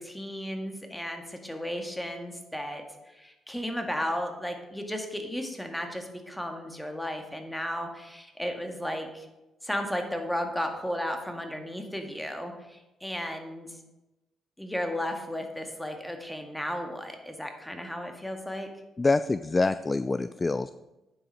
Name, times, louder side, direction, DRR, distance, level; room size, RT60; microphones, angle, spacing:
voice 1, 0.0-9.3 9.6-13.7 14.6-18.7, equal, 5° left, 4 dB, 1.8 m, -34 dB
voice 2, 19.0-20.7, left 3 dB, 25° left, 13 dB, 0.3 m, -26 dB
9.8 x 7.2 x 5.5 m, 1.0 s
cardioid pair, 90°, 0 cm